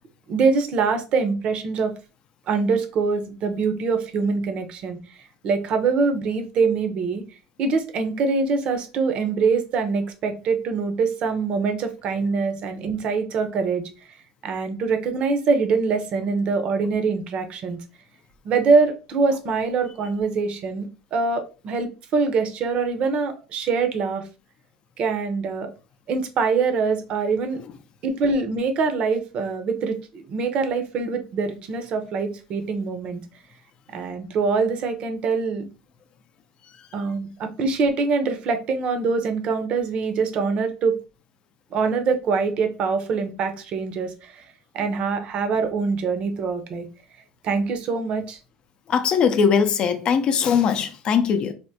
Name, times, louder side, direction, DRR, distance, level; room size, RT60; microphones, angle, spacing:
voice 1, 0.3-1.9 2.5-5.2 5.4-7.2 7.6-13.9 14.4-17.8 18.4-24.2 25.0-25.7 26.1-27.6 28.0-33.2 33.9-35.7 36.9-41.0 41.7-44.5 44.7-46.9 47.4-48.4, right 4 dB, 50° right, 0.7 m, -24 dB
voice 2, 48.9-51.5, left 6 dB, 45° left, 0.5 m, -21 dB
3.4 x 2.1 x 2.7 m
supercardioid pair, 105°, 2 cm